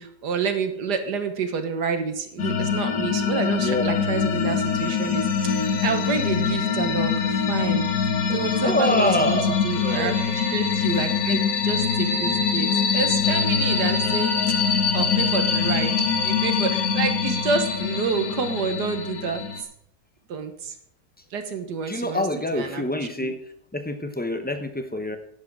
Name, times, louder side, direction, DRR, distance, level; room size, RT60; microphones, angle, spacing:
voice 1, 0.0-7.8 8.2-9.4 9.6-14.7 14.9-15.9 16.2-19.4 20.3-20.7 21.3-22.2 22.5-23.3, right 5 dB, 70° right, 8 dB, 1.7 m, -29 dB
sound 1, 2.4-19.6, left 6 dB, 60° left, 1.7 m, -23 dB
voice 2, 8.3-10.2 21.9-23.4 23.7-25.2, left 1 dB, 15° left, 7 dB, 0.3 m, -26 dB
10.0 x 7.6 x 6.2 m, 0.69 s
omnidirectional pair, 1.9 m